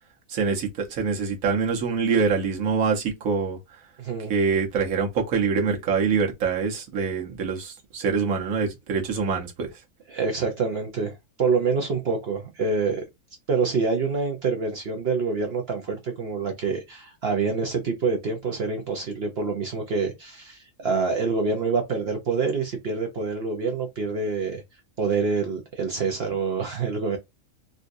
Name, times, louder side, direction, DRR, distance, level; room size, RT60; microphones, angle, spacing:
voice 1, 0.3-3.6 4.3-9.7, right 5 dB, 85° right, 1.3 m, -25 dB
voice 2, 4.0-4.3 10.1-13.0 13.5-24.6 25.0-27.2, right 4 dB, 55° right, 0.8 m, -26 dB
3.8 x 2.4 x 2.6 m
omnidirectional pair, 1.4 m